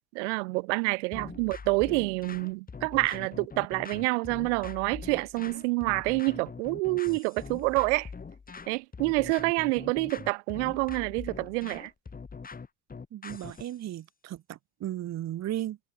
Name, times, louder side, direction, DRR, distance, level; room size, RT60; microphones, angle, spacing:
voice 1, 0.1-8.1 8.7-11.9, right 28 dB, 80° right, 0.6 m, -28 dB
sound 1, 1.1-13.8, left 5 dB, 25° left, 4.5 m, -43 dB
voice 2, 13.1-15.8, right 12 dB, 50° right, 1.9 m, -36 dB
hypercardioid pair, 80°, 35 cm